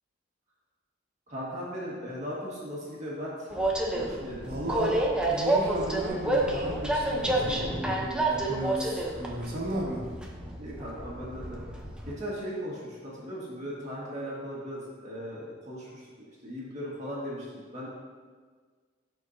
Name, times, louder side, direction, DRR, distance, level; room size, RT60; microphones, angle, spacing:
voice 1, 1.3-3.5 3.9-4.5 10.6-11.6 12.1-16.0 16.4-17.9, equal, 40° right, -6 dB, 1.8 m, -37 dB
Train, 3.5-12.1, right 1 dB, 5° right, 0.8 m, -29 dB
voice 2, 4.4-10.1, right 1 dB, 55° right, -4 dB, 1.6 m, -35 dB
12.5 x 4.6 x 2.7 m, 1.5 s
head